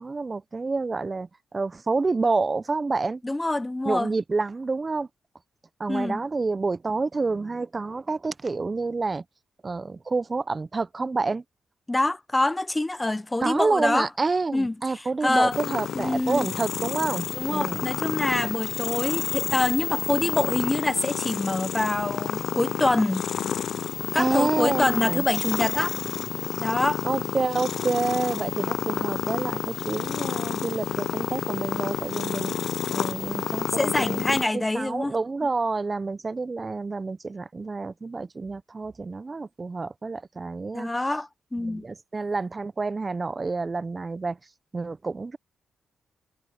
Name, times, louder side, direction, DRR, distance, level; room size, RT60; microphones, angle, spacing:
voice 1, 0.0-3.2 3.9-5.1 5.8-9.2 9.6-11.4 13.4-17.9 24.2-25.3 27.0-32.5 32.9-34.4 34.7-40.9 41.6-44.4 44.7-45.4, right 3 dB, 35° right, 0.6 m, -28 dB
voice 2, 3.2-4.1 5.9-6.2 11.9-14.1 14.5-15.6 15.9-16.5 17.4-23.2 24.1-26.0 26.6-27.0 33.8-35.1 40.7-41.9, left 2 dB, 20° left, 0.7 m, -25 dB
sound 1, 15.5-34.5, left 8 dB, 70° left, 0.4 m, -30 dB
supercardioid pair, 55°, 0 cm